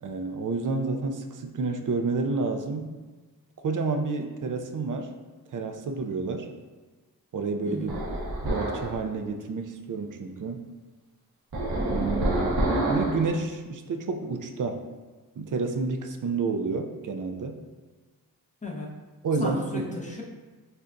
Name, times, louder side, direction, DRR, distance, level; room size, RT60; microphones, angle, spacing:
voice 1, 0.0-2.9 3.6-5.1 5.5-6.5 7.3-7.9 8.4-10.6 11.9-12.6 12.9-14.8 15.4-17.6 19.2-19.9, right 4 dB, 55° right, 5 dB, 0.5 m, -29 dB
voice 2, 7.7-8.0 18.6-18.9 19.4-20.2, left 2 dB, 20° left, -1 dB, 0.8 m, -35 dB
sound 1, 7.9-8.9 11.5-13.3, right 1 dB, 80° right, 1.1 m, -27 dB
6.6 x 2.3 x 2.6 m, 1.3 s
cardioid pair, 65°, 38 cm